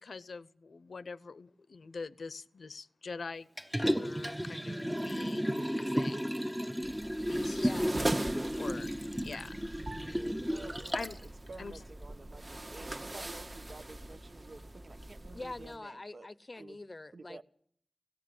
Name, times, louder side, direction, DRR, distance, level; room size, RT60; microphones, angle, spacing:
voice 1, 0.0-3.5 3.8-6.5 7.3-7.7 8.6-8.9 9.2-9.6 10.9-11.1 11.6-11.7, left 4 dB, 75° left, 0.7 m, -44 dB
Liquid, 3.6-11.2 11.7-11.8, equal, 5° right, 0.8 m, -33 dB
sound 1, 6.8-15.8, right 1 dB, 40° right, 1.6 m, -41 dB
voice 2, 7.5-8.0 15.3-17.4, left 2 dB, 35° left, 0.7 m, -44 dB
voice 3, 9.7-16.3 16.6-16.8 17.1-17.4, right 3 dB, 60° right, 1.1 m, -51 dB
18.0 x 16.5 x 9.4 m
wide cardioid pair, 90°, 0 cm